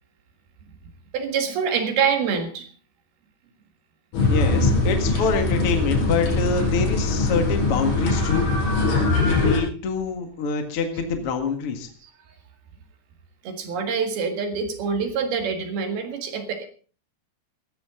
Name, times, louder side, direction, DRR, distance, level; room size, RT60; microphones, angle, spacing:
voice 1, 1.1-2.7 5.1-5.2 10.9-11.0 12.0-12.1 13.4-16.6, right 6 dB, 60° right, 6 dB, 3.3 m, -26 dB
sound 1, 4.1-9.6, left 3 dB, 90° left, 7.7 m, -22 dB
voice 2, 4.3-8.5 9.2-11.9, left 4 dB, 55° left, 5 dB, 1.5 m, -25 dB
18.5 x 14.5 x 3.8 m, 0.40 s
omnidirectional pair, 5.5 m